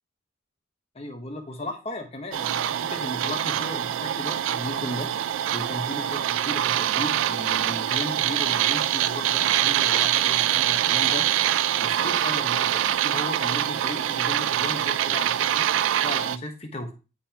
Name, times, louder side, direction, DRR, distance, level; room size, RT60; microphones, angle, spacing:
voice 1, 0.9-5.1 5.5-11.3 11.5-16.9, left 1 dB, 30° left, 4 dB, 1.0 m, -35 dB
sound 1, 2.3-16.4, right 11 dB, 75° right, 0.3 m, -24 dB
9.4 x 3.7 x 2.8 m, 0.31 s
head